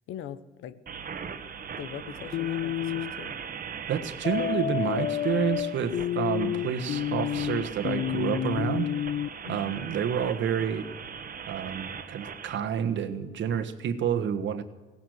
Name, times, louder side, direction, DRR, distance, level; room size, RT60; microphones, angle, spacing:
voice 1, 0.1-0.8 1.8-3.4 9.4-9.9, left 10 dB, 85° left, 15 dB, 1.0 m, -41 dB
sound 1, 0.9-12.6, right 6 dB, 45° right, 1.5 m, -40 dB
sound 2, 2.3-3.1 4.2-9.3, left 11 dB, 55° left, 0.4 m, -29 dB
voice 2, 3.9-8.9 9.5-10.9 11.5-14.6, right 8 dB, 70° right, 10 dB, 1.5 m, -29 dB
17.0 x 11.0 x 7.9 m, 1.3 s
cardioid pair, 90°, 20 cm